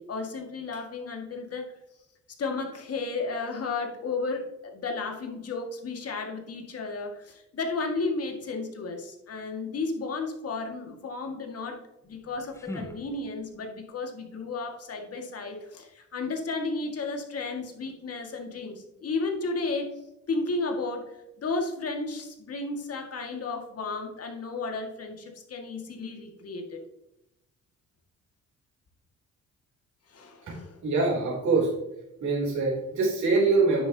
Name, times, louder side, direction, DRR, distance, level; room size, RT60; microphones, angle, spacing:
voice 1, 0.0-1.6 2.4-11.8 12.0-20.0 20.3-26.8 30.1-30.7, left 3 dB, 50° left, 2 dB, 2.1 m, -33 dB
sound 1, 12.0-13.7, left 1 dB, 10° left, 1.1 m, -43 dB
voice 2, 30.8-31.7 32.2-33.9, right 3 dB, 70° right, -4 dB, 3.5 m, -24 dB
10.0 x 8.0 x 2.9 m, 0.89 s
cardioid pair, 90°, 30 cm